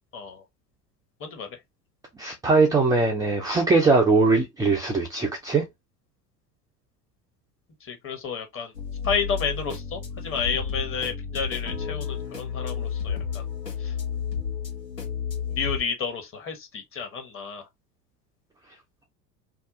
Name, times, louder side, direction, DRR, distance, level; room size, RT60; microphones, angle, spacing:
voice 1, 0.1-0.4 1.2-1.6 7.8-8.7 9.0-13.4 13.8-13.9 15.5-17.6, left 6 dB, 25° left, 1.0 m, -31 dB
voice 2, 2.2-5.7, right 3 dB, 10° right, 0.4 m, -21 dB
sound 1, 8.7-15.8, left 6 dB, 85° left, 1.2 m, -31 dB
2.7 x 2.2 x 3.5 m
figure-of-eight pair, 75°, 47 cm